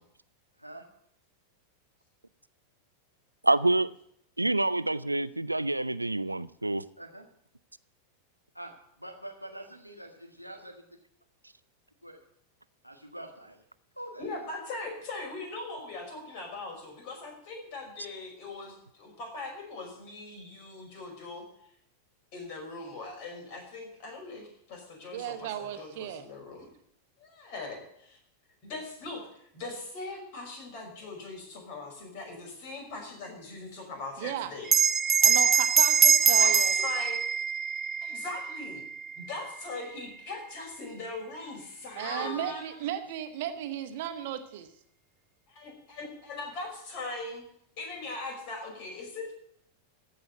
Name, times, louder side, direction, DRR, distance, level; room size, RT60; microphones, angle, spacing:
voice 1, 3.4-3.9 4.4-6.8, right 2 dB, 85° right, 17 dB, 0.4 m, -27 dB
voice 2, 9.0-10.8 12.0-12.2 12.8-13.6 13.9-14.5 42.0-42.6, right 1 dB, 90° left, 5 dB, 1.7 m, -44 dB
voice 3, 14.2-21.5 22.3-26.7 27.2-28.2 28.6-29.3 29.5-34.7 36.2-37.2 38.0-38.8 39.2-42.7 45.5-47.4 47.8-49.3, left 3 dB, 45° left, 0 dB, 5.5 m, -40 dB
voice 4, 25.1-26.2 34.2-34.5 35.2-36.7 42.0-44.7, right 11 dB, 50° right, 8 dB, 1.2 m, -35 dB
Bell, 34.7-39.5, right 7 dB, 20° right, 0.5 m, -24 dB
15.0 x 5.6 x 9.3 m, 0.71 s
figure-of-eight pair, 90°, 0 cm